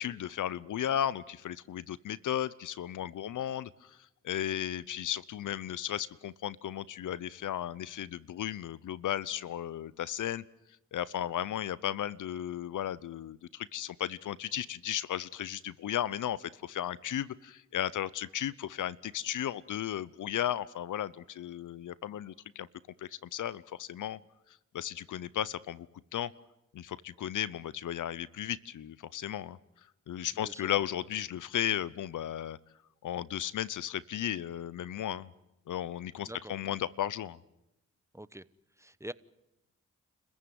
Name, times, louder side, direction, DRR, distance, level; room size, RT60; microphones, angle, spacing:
voice 1, 0.0-4.0 4.2-10.4 10.9-22.7 23.0-24.2 24.7-25.9 26.1-26.3 26.7-29.6 30.1-32.6 33.0-35.3 35.7-37.4, left 11 dB, 75° left, 0.8 m, -35 dB
voice 2, 30.4-30.8 36.2-36.5 38.1-38.4 38.8-39.1, right 1 dB, 10° right, 1.0 m, -45 dB
30.0 x 15.0 x 9.5 m
supercardioid pair, 50°, 31 cm